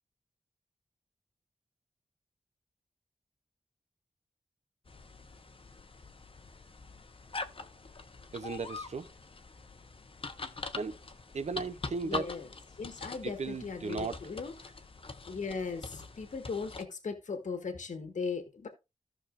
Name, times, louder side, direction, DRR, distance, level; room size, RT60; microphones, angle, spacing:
sound 1, 4.9-16.8, left 3 dB, 45° left, 0.9 m, -44 dB
voice 1, 8.3-9.1 10.8-11.0 11.3-12.3 13.2-14.2, right 4 dB, 60° right, 0.6 m, -36 dB
voice 2, 12.0-12.5 12.8-14.7 15.3-18.7, left 5 dB, 75° left, 1.5 m, -38 dB
15.0 x 6.1 x 2.5 m
wide cardioid pair, 70°, 13 cm